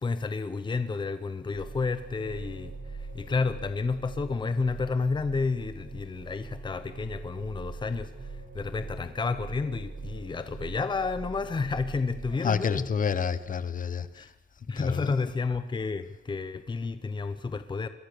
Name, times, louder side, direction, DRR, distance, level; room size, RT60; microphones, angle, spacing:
voice 1, 0.0-12.8 14.1-14.3 14.7-17.9, left 4 dB, 25° left, 0.9 m, -31 dB
sound 1, 1.5-12.3, right 3 dB, 45° right, 5.3 m, -42 dB
voice 2, 12.4-14.3 14.7-15.3, left 6 dB, 50° left, 1.2 m, -29 dB
28.0 x 22.0 x 6.8 m
wide cardioid pair, 165°, 18 cm